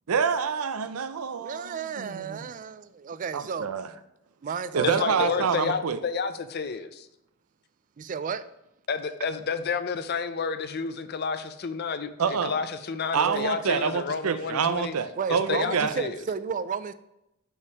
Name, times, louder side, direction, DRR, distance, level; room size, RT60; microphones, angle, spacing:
voice 1, 0.1-2.5 3.3-3.9 4.7-6.0 12.2-12.6 13.1-15.9, right 6 dB, 85° right, 0.5 m, -27 dB
voice 2, 1.4-3.7 4.4-5.5 8.0-8.5 13.2-13.5 13.7-13.8 15.2-16.9, right 6 dB, 35° right, 0.3 m, -33 dB
voice 3, 4.8-7.1 8.9-14.9 15.3-16.2, left 5 dB, 50° left, 0.5 m, -30 dB
5.5 x 5.2 x 4.7 m
head